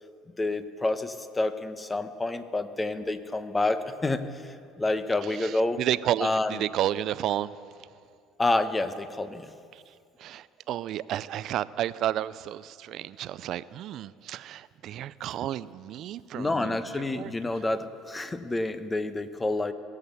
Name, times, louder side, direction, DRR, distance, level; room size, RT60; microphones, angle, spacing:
voice 1, 0.4-5.8 6.2-6.6 8.4-9.5 16.3-19.7, left 2 dB, 20° left, 11 dB, 1.0 m, -28 dB
voice 2, 5.4-7.5 10.2-17.3, right 12 dB, 60° right, 18 dB, 0.4 m, -31 dB
18.5 x 8.1 x 7.0 m, 2.3 s
hypercardioid pair, 75°, 0 cm